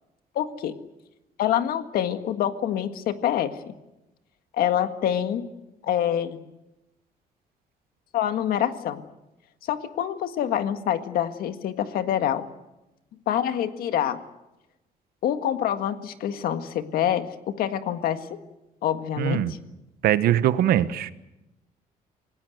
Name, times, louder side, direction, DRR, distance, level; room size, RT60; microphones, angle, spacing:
voice 1, 0.4-0.7 1.4-3.7 4.5-5.5 5.8-6.4 8.1-9.0 9.7-12.4 13.3-14.2 15.2-18.4 18.8-19.6, left 10 dB, 80° left, 8 dB, 1.8 m, -26 dB
voice 2, 19.2-19.5 20.0-21.1, right 11 dB, 80° right, 13 dB, 1.2 m, -21 dB
26.5 x 19.0 x 8.0 m, 0.97 s
cardioid pair, 150°, 15 cm